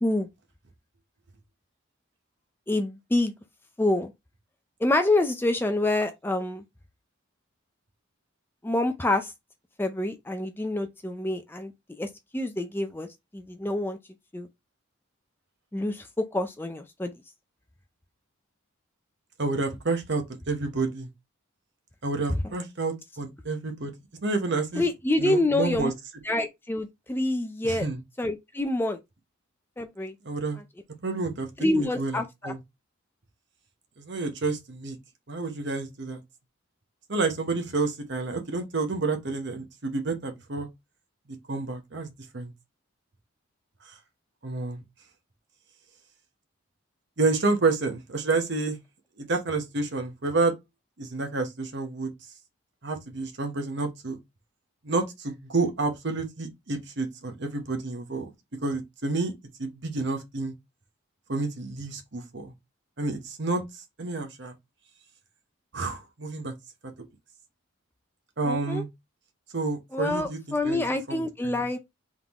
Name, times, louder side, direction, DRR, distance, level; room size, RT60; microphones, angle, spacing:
voice 1, 2.7-3.3 3.8-4.1 4.8-6.6 8.6-9.3 9.8-11.7 12.0-14.0 14.3-14.5 15.7-17.1 22.4-22.5 24.8-25.9 26.2-27.9 28.2-29.0 29.8-30.1 31.6-32.5 68.5-68.8 69.9-71.8, left 2 dB, 10° left, 0.3 m, -27 dB
voice 2, 19.4-21.1 22.0-23.9 24.2-24.8 25.2-25.9 27.6-28.0 30.2-30.6 31.0-31.5 31.7-32.6 34.0-35.0 35.3-36.2 37.1-40.7 41.5-42.5 43.8-43.9 44.4-44.8 47.2-48.8 49.2-50.6 51.0-52.1 52.8-54.2 54.8-58.3 58.6-59.3 59.6-60.5 61.3-62.5 63.0-64.5 65.7-66.5 66.8-66.9 68.4-68.9 69.5-71.7, right 3 dB, 55° right, 0.9 m, -29 dB
3.8 x 3.6 x 2.9 m
head